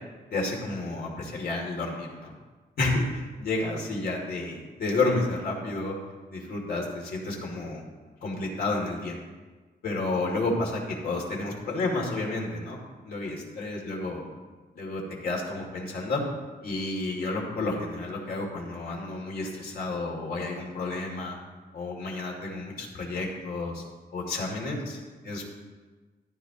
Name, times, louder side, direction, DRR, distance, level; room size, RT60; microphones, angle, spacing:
voice 1, 0.3-2.3 2.8-5.9 6.3-7.8 8.2-9.2 9.8-12.8 13.1-14.2 14.7-16.2 16.6-21.4 21.7-23.8 24.1-25.4, left 2 dB, 65° left, -1 dB, 2.8 m, -31 dB
14.5 x 13.0 x 3.0 m, 1.3 s
wide cardioid pair, 155°, 17 cm